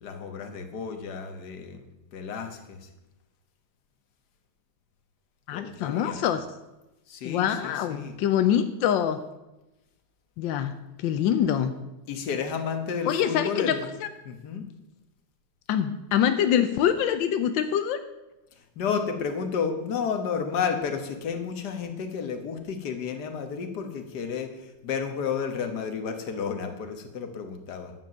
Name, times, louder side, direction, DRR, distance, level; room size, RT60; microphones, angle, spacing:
voice 1, 0.0-1.9 2.1-2.9 5.5-6.2 7.1-8.1 12.1-13.9 14.2-14.7 18.5-27.9, left 6 dB, 60° left, 6 dB, 1.7 m, -32 dB
voice 2, 5.5-6.4 7.2-9.2 10.4-10.7 11.0-11.7 13.1-13.7 15.7-18.0, left 9 dB, 90° left, 9 dB, 1.4 m, -24 dB
10.5 x 7.6 x 6.5 m, 0.99 s
omnidirectional pair, 2.0 m